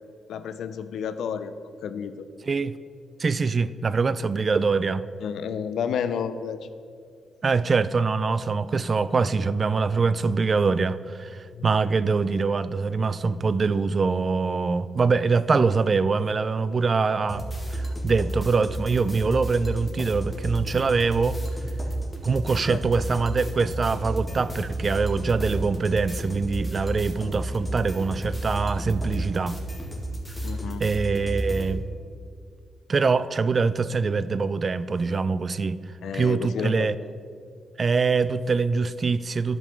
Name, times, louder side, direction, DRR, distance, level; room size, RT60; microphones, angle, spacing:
voice 1, 0.3-1.6 1.8-2.1 5.2-6.6 11.5-11.7 22.7-22.8 30.4-30.8 36.0-37.1, left 7 dB, 75° left, 12 dB, 0.5 m, -31 dB
voice 2, 2.5-2.8 3.2-5.1 7.4-21.4 22.2-29.6 30.8-31.8 32.9-35.8 36.1-36.9 37.8-39.6, right 4 dB, 40° right, 15 dB, 0.3 m, -24 dB
sound 1, 17.3-31.7, right 1 dB, 10° left, 1.8 m, -31 dB
10.5 x 5.3 x 5.7 m, 2.2 s
cardioid pair, 85°, 0 cm